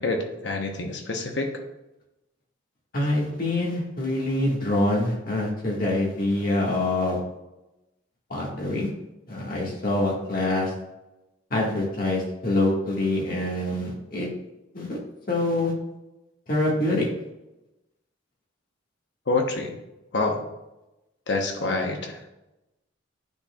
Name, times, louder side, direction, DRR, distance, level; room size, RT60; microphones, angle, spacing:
voice 1, 0.0-1.5 19.3-19.7 20.1-20.4 21.3-22.3, left 3 dB, 65° left, 3 dB, 1.0 m, -27 dB
voice 2, 2.9-7.2 8.3-8.9 9.3-10.7 11.5-14.3 14.7-15.0 15.3-15.7 16.5-17.1, left 2 dB, 50° left, -3 dB, 1.8 m, -25 dB
9.7 x 4.3 x 2.4 m, 0.95 s
head